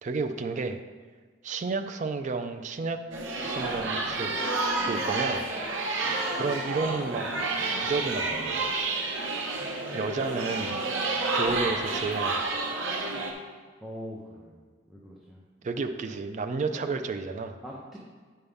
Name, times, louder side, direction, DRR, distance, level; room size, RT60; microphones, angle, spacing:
voice 1, 0.0-0.8 1.4-3.0 3.4-4.3 4.9-5.5 6.3-7.3 7.8-8.6 9.9-10.8 11.3-12.5 15.6-17.6, right 4 dB, 40° right, 6 dB, 0.4 m, -31 dB
sound 1, 3.1-13.3, right 3 dB, 75° right, 1.0 m, -30 dB
voice 2, 13.8-14.6 14.9-15.4 16.6-16.9 17.6-18.0, equal, ahead, -5 dB, 0.8 m, -42 dB
8.8 x 5.5 x 3.5 m, 1.5 s
head